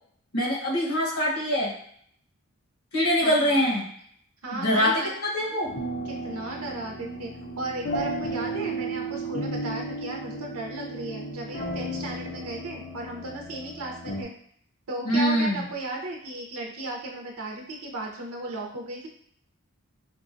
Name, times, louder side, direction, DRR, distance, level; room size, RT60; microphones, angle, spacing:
voice 1, 0.3-1.7 2.9-3.9 4.6-5.7 15.0-15.6, equal, 85° left, -2 dB, 1.1 m, -24 dB
voice 2, 3.2-3.7 4.4-5.1 6.1-7.3 7.6-14.3 14.9-19.1, right 2 dB, 90° right, 0 dB, 0.7 m, -35 dB
sound 1, 5.6-14.2, right 1 dB, 45° left, 0.5 m, -34 dB
4.6 x 2.3 x 2.5 m, 0.64 s
head